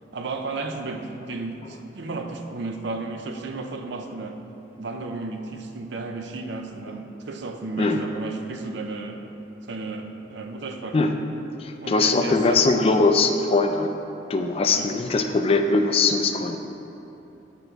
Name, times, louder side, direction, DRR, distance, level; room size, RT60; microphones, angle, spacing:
voice 1, 0.1-4.4 4.8-9.2 9.7-11.1 11.8-12.8 14.7-14.9, right 3 dB, 65° right, 5 dB, 0.5 m, -33 dB
voice 2, 11.6-13.9 14.3-16.6, left 3 dB, 30° left, 6 dB, 0.3 m, -21 dB
9.2 x 4.5 x 3.9 m, 3.0 s
head